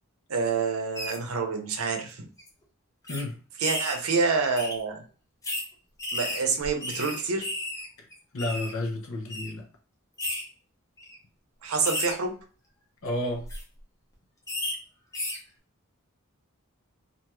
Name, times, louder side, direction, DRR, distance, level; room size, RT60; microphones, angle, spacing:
voice 1, 0.3-2.3 3.6-5.0 6.1-7.5 11.6-12.3, right 4 dB, 85° right, 0.7 m, -27 dB
sound 1, 0.9-1.2 2.0-2.1 2.4-2.5 3.1-3.2 3.6-4.0 4.5-4.7 5.4-5.6 6.0-8.7 9.3-9.5 10.2-10.4 11.0-11.2 11.8-12.1 13.3-13.6 14.5-14.7 15.1-15.4, left 1 dB, 15° left, 0.6 m, -33 dB
voice 2, 8.3-9.7 13.0-13.5, left 1 dB, 70° left, 0.7 m, -31 dB
2.5 x 2.3 x 3.0 m
head